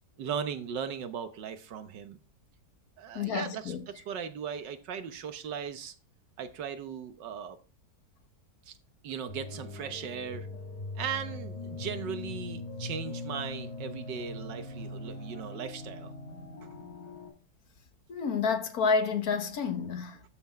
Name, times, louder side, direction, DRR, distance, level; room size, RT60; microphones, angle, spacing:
voice 1, 0.2-2.2 3.0-5.9 6.4-7.6 8.7-8.8 9.0-10.5 11.0-16.1, right 7 dB, 90° right, 1.7 m, -38 dB
voice 2, 3.2-3.8 18.1-20.2, left 5 dB, 60° left, 1.6 m, -29 dB
sound 1, 9.3-17.3, left 3 dB, 35° left, 3.6 m, -41 dB
13.0 x 5.9 x 4.4 m
omnidirectional pair, 1.8 m